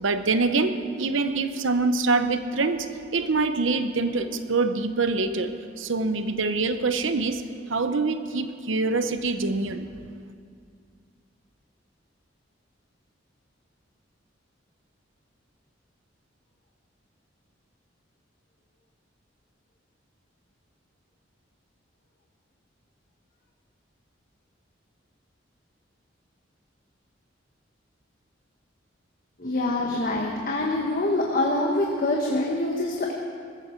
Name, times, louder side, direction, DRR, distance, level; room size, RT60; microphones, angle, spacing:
voice 1, 0.0-7.4 7.7-9.9, right 3 dB, 85° right, 9 dB, 0.8 m, -25 dB
voice 2, 29.4-33.1, left 2 dB, 45° left, -1 dB, 1.3 m, -25 dB
20.0 x 15.0 x 4.5 m, 2.2 s
head